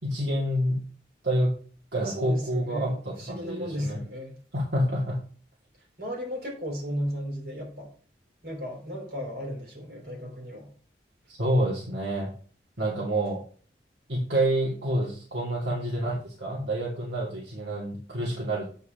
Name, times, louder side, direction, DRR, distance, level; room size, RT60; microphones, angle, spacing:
voice 1, 0.0-0.8 1.2-1.5 1.9-4.0 4.5-5.2 11.3-12.3 12.8-13.4 14.1-18.7, right 1 dB, 80° right, 2.5 m, -28 dB
voice 2, 1.9-4.4 6.0-7.9 8.4-10.7, equal, 60° right, 4.5 m, -35 dB
8.5 x 4.7 x 5.8 m
head